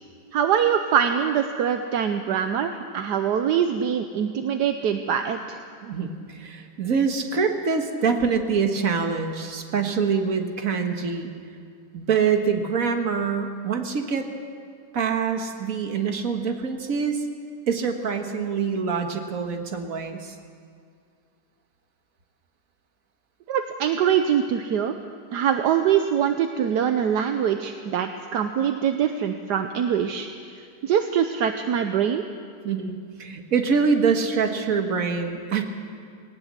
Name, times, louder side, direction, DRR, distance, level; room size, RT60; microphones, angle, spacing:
voice 1, 0.3-5.6 23.5-24.9 25.3-32.2, right 8 dB, 75° right, 7 dB, 1.4 m, -23 dB
voice 2, 5.8-11.3 11.9-14.3 14.9-17.2 17.7-20.3 32.6-35.6, right 5 dB, 55° right, 5 dB, 1.9 m, -25 dB
19.5 x 18.5 x 7.5 m, 2.2 s
omnidirectional pair, 1.9 m